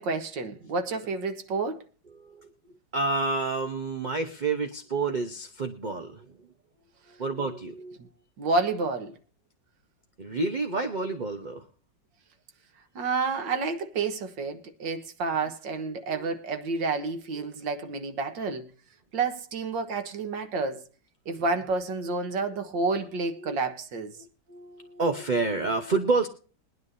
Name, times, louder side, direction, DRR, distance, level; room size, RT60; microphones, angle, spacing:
voice 1, 0.0-1.8 8.0-8.1 8.4-9.2 13.0-18.7 19.1-20.8 21.3-24.2, right 4 dB, 90° right, 2.0 m, -29 dB
voice 2, 2.1-2.5 2.9-6.5 7.1-8.0 10.2-11.7 16.1-16.3 17.3-17.5 23.3-23.6 24.2-26.3, right 3 dB, 30° right, 1.0 m, -29 dB
22.5 x 9.5 x 2.7 m
omnidirectional pair, 1.9 m